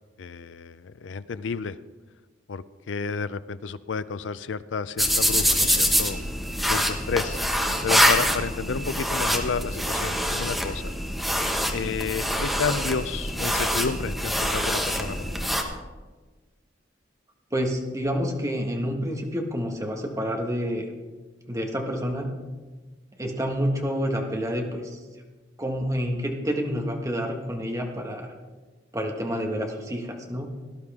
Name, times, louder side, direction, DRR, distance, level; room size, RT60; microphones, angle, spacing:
voice 1, 0.2-1.8 2.5-6.2 6.6-7.4 7.8-10.9 11.7-15.3, left 5 dB, 70° left, 15 dB, 0.5 m, -31 dB
sound 1, 5.0-15.6, equal, ahead, 1.1 m, -25 dB
voice 2, 17.5-20.9 21.5-22.3 23.2-25.0 25.6-28.3 28.9-30.5, equal, 15° right, 1 dB, 1.6 m, -28 dB
18.0 x 11.5 x 3.6 m, 1.3 s
head